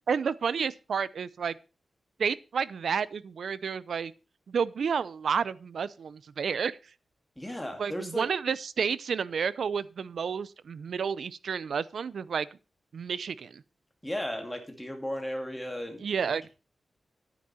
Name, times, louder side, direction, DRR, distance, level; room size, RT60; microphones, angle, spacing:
voice 1, 0.1-1.5 2.2-4.1 4.5-6.8 7.8-12.5 12.9-13.6 16.0-16.5, right 6 dB, 75° right, 0.6 m, -30 dB
voice 2, 7.4-8.3 14.0-16.0, left 1 dB, 5° left, 2.3 m, -35 dB
10.5 x 9.3 x 4.2 m
wide cardioid pair, 175°, 0 cm